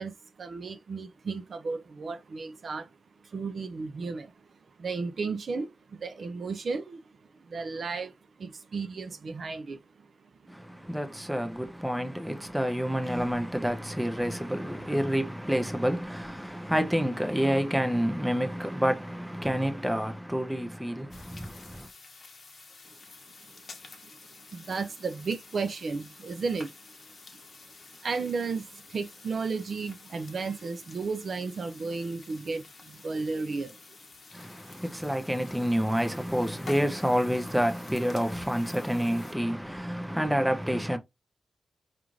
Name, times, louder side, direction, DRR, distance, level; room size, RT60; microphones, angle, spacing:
voice 1, 0.0-10.9 22.9-23.0 23.4-23.7 24.0-34.0, right 4 dB, 50° right, 0.5 m, -35 dB
voice 2, 10.5-21.9 34.3-41.0, equal, 5° right, 0.6 m, -28 dB
sound 1, 21.1-39.4, left 4 dB, 40° left, 0.9 m, -50 dB
4.9 x 2.5 x 3.0 m
wide cardioid pair, 140°, 0 cm